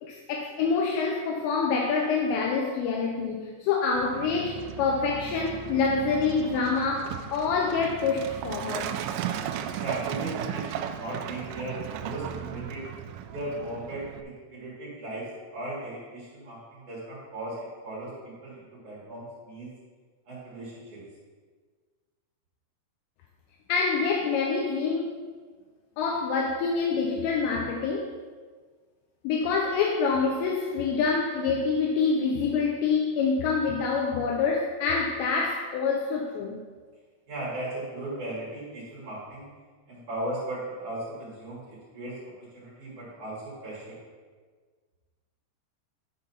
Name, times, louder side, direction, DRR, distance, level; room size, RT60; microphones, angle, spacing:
voice 1, 0.0-8.9 23.7-25.1 26.0-28.1 29.2-36.6, left 5 dB, 85° left, 0 dB, 2.9 m, -26 dB
Truck, 4.0-14.2, right 9 dB, 85° right, 2.6 m, -36 dB
voice 2, 9.8-12.8 13.3-19.7 20.3-21.0 37.3-39.5 39.9-43.9, right 1 dB, 50° right, -8 dB, 3.3 m, -37 dB
10.5 x 3.9 x 5.6 m, 1.5 s
omnidirectional pair, 5.2 m